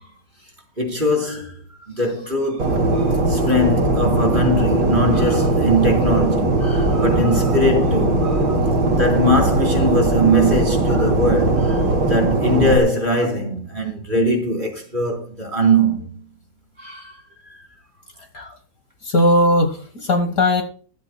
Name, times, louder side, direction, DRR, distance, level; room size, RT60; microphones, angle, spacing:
voice 1, 0.8-8.6 8.9-16.2 16.8-17.2 17.5-17.6, equal, 25° right, 3.9 m, -21 dB
Fixed-wing aircraft airplane, 2.6-12.8, right 2 dB, 90° right, 3.3 m, -19 dB
voice 2, 19.1-20.6, left 1 dB, 55° left, 1.9 m, -18 dB
16.0 x 13.0 x 2.3 m
omnidirectional pair, 1.9 m